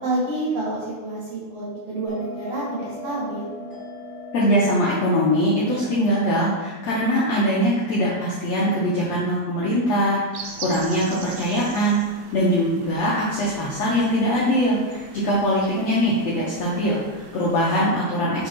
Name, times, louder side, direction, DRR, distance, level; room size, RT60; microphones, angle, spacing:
voice 1, 0.0-3.5, right 2 dB, 55° right, -6 dB, 2.3 m, -28 dB
Bell, 2.1-7.1, left 2 dB, 20° left, 1.3 m, -39 dB
voice 2, 4.3-18.5, equal, 75° left, -6 dB, 1.6 m, -22 dB
sound 1, 10.3-17.9, right 5 dB, 85° right, 2.4 m, -41 dB
5.6 x 4.0 x 4.5 m, 1.2 s
omnidirectional pair, 4.1 m